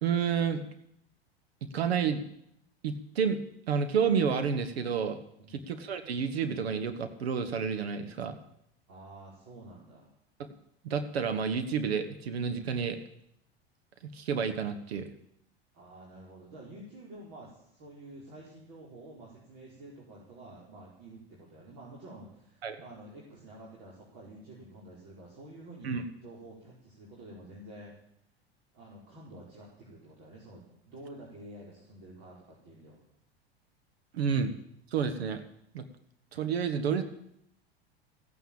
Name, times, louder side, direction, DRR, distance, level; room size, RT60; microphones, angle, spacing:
voice 1, 0.0-0.6 1.7-2.2 2.8-5.2 5.5-8.4 10.4-10.5 10.8-13.0 14.0-15.1 22.6-22.8 25.8-26.0 34.1-34.5 34.9-35.4 35.7-35.9 36.3-37.0, right 6 dB, 70° right, 9 dB, 1.4 m, -30 dB
voice 2, 5.4-5.7 8.9-10.1 15.7-28.0 28.7-33.0, right 1 dB, 50° right, -4 dB, 4.7 m, -49 dB
15.5 x 9.3 x 8.8 m, 0.74 s
figure-of-eight pair, 85°, 32 cm